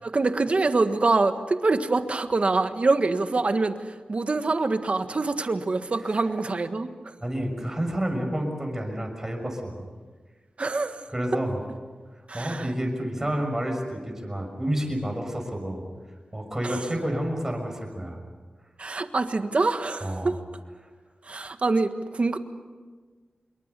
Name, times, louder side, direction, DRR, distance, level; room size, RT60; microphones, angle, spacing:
voice 1, 0.0-3.8 4.1-6.9 10.6-11.0 12.3-12.7 16.6-16.8 18.8-20.3 21.3-22.4, right 3 dB, 50° right, 8 dB, 1.5 m, -25 dB
voice 2, 7.2-9.8 11.1-11.6 12.3-15.8 16.3-18.2 20.0-20.3, right 1 dB, 15° right, 2 dB, 6.3 m, -29 dB
26.0 x 23.0 x 6.9 m, 1.4 s
wide cardioid pair, 95°, 3 cm